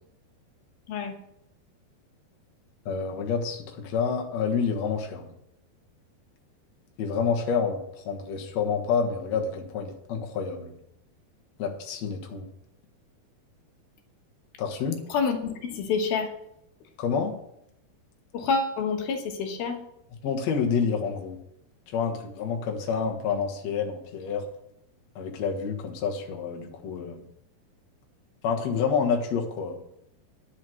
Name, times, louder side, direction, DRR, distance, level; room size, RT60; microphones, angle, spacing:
voice 1, 2.9-5.3 7.0-10.7 11.6-12.5 14.6-15.0 17.0-17.3 20.2-21.4 21.9-24.5 25.2-27.2 28.4-29.8, left 6 dB, 55° left, 1 dB, 2.1 m, -28 dB
voice 2, 15.1-16.3 18.3-19.8, left 5 dB, 75° left, 4 dB, 2.8 m, -27 dB
10.5 x 6.4 x 7.5 m, 0.79 s
omnidirectional pair, 4.5 m